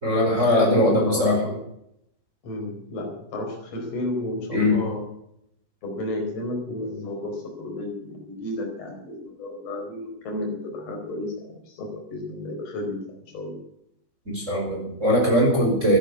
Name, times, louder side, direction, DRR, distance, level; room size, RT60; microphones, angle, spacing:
voice 1, 0.0-1.4 4.5-4.8 14.2-16.0, left 1 dB, 15° right, -1 dB, 4.8 m, -20 dB
voice 2, 0.5-1.5 2.4-5.0 5.8-13.0 13.3-13.6, left 1 dB, 35° left, 1 dB, 5.1 m, -32 dB
15.0 x 11.0 x 8.3 m, 0.77 s
omnidirectional pair, 5.8 m